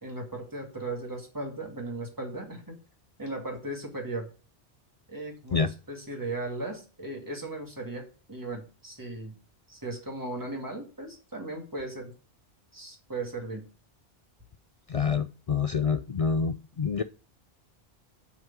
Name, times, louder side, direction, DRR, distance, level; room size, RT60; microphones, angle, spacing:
voice 1, 0.0-2.8 3.2-4.3 5.1-9.3 9.7-12.1 12.7-13.7, right 2 dB, 20° right, 1 dB, 2.2 m, -37 dB
voice 2, 14.9-17.0, left 5 dB, 55° left, 10 dB, 0.4 m, -27 dB
6.3 x 6.0 x 7.2 m, 0.35 s
omnidirectional pair, 1.1 m